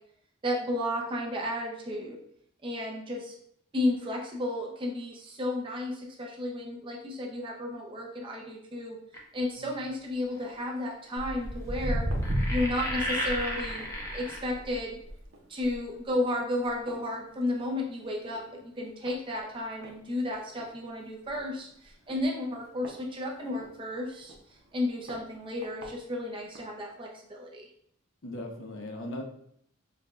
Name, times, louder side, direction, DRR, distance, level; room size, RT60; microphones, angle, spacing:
voice 1, 0.4-2.2 2.6-3.3 3.7-9.0 9.3-12.1 12.5-13.9 14.1-15.0 15.5-24.3 24.7-27.7, left 1 dB, 25° right, -1 dB, 0.6 m, -33 dB
sound 1, 9.1-9.4 10.4-10.5 12.2-14.4, equal, 15° left, 0.6 m, -33 dB
voice 2, 9.5-9.8 28.2-29.2, left 1 dB, 70° left, 2 dB, 0.6 m, -39 dB
Walk footsteps, 11.2-17.8 18.1-18.5 19.1-19.2 19.8-19.9 20.3-20.4 20.6-20.7 21.3-21.4 22.1-23.7 24.3-24.4 25.1-25.2 25.6-25.9 26.6-26.7, equal, 70° right, 0.7 m, -35 dB
4.7 x 2.3 x 2.4 m, 0.68 s
head